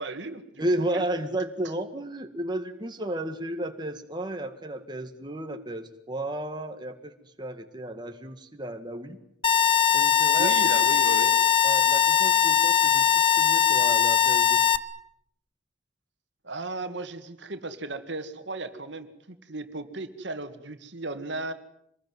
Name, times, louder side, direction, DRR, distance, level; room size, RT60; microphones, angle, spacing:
voice 1, 0.0-1.1 10.4-11.4 16.4-21.5, right 2 dB, 65° right, 9 dB, 2.2 m, -35 dB
voice 2, 0.6-7.1 7.4-9.2 9.9-10.8 11.6-14.6, right 1 dB, 25° right, 5 dB, 1.8 m, -33 dB
sound 1, 9.4-14.8, left 9 dB, 25° left, 1.1 m, -21 dB
26.0 x 20.5 x 9.5 m, 0.75 s
head